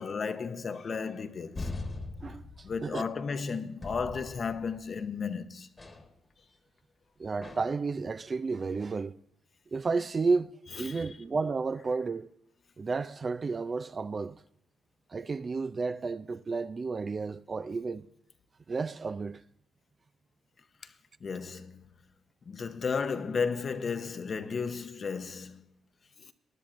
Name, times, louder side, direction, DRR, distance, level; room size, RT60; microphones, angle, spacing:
voice 1, 0.0-1.7 2.6-5.7 10.8-11.1 20.8-20.9 21.2-21.9 22.5-25.7, left 5 dB, 45° left, 0.8 m, -34 dB
sound 1, 1.5-3.2 3.8-5.0 5.8-6.1 7.4-7.9, left 3 dB, 25° left, 1.4 m, -41 dB
voice 2, 2.2-3.0 7.2-9.1 9.7-10.5 10.8-12.3 12.8-14.4 15.1-18.1 18.7-19.4, right 4 dB, 35° right, 0.4 m, -32 dB
19.5 x 10.5 x 2.6 m
cardioid pair, 90°, 0 cm